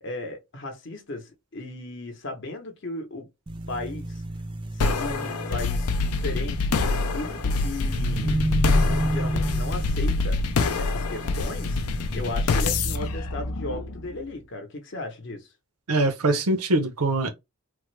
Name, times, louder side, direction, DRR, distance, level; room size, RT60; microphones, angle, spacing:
voice 1, 0.0-3.3 3.7-4.2 4.7-8.4 9.0-10.4 10.8-11.8 12.1-15.5, left 2 dB, 50° left, 0.8 m, -36 dB
sound 1, 3.5-13.1, right 1 dB, 20° right, 0.4 m, -32 dB
sound 2, 4.8-14.2, left 3 dB, 85° left, 0.5 m, -26 dB
voice 2, 15.9-17.3, right 2 dB, 90° right, 0.7 m, -23 dB
3.3 x 2.0 x 3.2 m
head